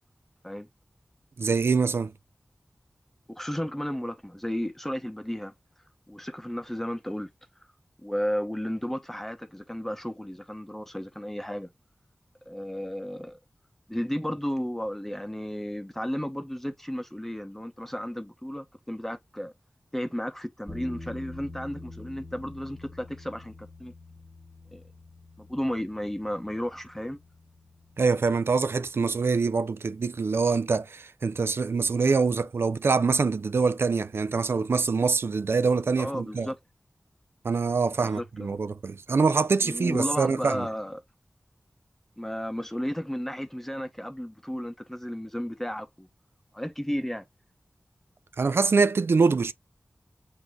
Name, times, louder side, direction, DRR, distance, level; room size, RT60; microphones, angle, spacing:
voice 1, 1.4-2.1 28.0-36.5 37.4-40.7 48.4-49.5, right 4 dB, 75° right, 0.3 m, -24 dB
voice 2, 3.3-5.5 6.1-7.3 8.0-11.7 12.5-13.4 13.9-19.5 19.9-23.9 24.7-24.8 25.4-27.2 36.0-36.6 38.0-38.6 39.6-41.0 42.2-46.1 46.5-47.2, equal, 5° left, 0.7 m, -33 dB
sound 1, 20.7-29.6, left 2 dB, 15° right, 1.3 m, -46 dB
7.8 x 2.7 x 2.2 m
wide cardioid pair, 70°, 4 cm